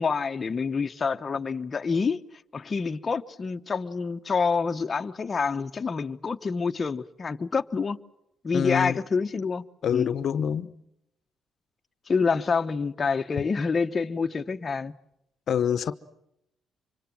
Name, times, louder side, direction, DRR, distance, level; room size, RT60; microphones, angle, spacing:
voice 1, 0.0-2.2 2.5-8.0 8.4-9.6 9.9-10.1 12.1-14.9, left 5 dB, 35° left, 1.1 m, -27 dB
voice 2, 8.5-9.0 9.8-10.7 15.5-15.9, left 8 dB, 60° left, 1.0 m, -26 dB
26.0 x 24.0 x 7.7 m
cardioid pair, 90°, 0 cm